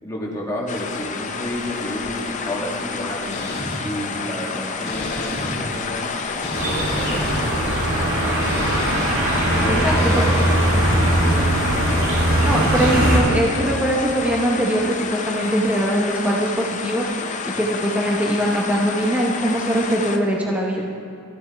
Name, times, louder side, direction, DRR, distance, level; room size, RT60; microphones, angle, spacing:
voice 1, 0.0-3.3 3.8-8.7 9.5-11.5, equal, 15° left, -3 dB, 1.4 m, -31 dB
sound 1, 0.7-20.2, left 4 dB, 35° left, 0.6 m, -29 dB
sound 2, 3.3-3.8 4.9-5.6 6.4-7.4 8.4-9.1 10.0-10.4, left 1 dB, 55° left, 1.6 m, -31 dB
sound 3, 6.5-13.2, right 1 dB, 65° right, 2.0 m, -20 dB
voice 2, 9.7-10.2 12.4-17.1 17.4-20.9, right 1 dB, 5° right, -2 dB, 0.8 m, -22 dB
14.0 x 7.6 x 3.4 m, 2.6 s
head